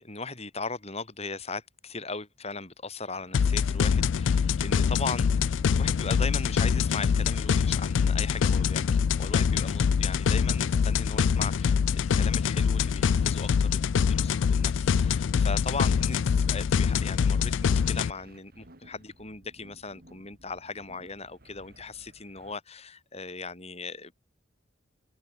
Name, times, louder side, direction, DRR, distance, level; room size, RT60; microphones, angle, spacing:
voice 1, 0.0-24.1, left 4 dB, 35° left, 5.8 m, -38 dB
sound 1, 3.1-22.6, right 1 dB, 50° right, 5.2 m, -55 dB
sound 2, 3.3-18.1, left 6 dB, 75° left, 0.4 m, -24 dB
head